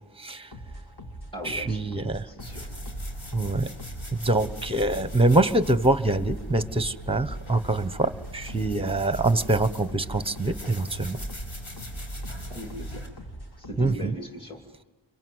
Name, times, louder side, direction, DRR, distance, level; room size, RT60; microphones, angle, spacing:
voice 1, 0.2-0.5 1.4-2.3 3.3-3.7 4.2-11.2 13.8-14.1, right 2 dB, 10° right, 13 dB, 1.0 m, -24 dB
sound 1, 0.5-14.1, right 1 dB, 55° left, 1.9 m, -43 dB
voice 2, 1.3-2.6 12.5-13.0 13.6-14.6, equal, 10° left, 2 dB, 2.6 m, -39 dB
sound 2, 2.4-13.1, equal, 90° left, 5.4 m, -39 dB
27.0 x 23.0 x 9.5 m, 1.2 s
wide cardioid pair, 65°, 46 cm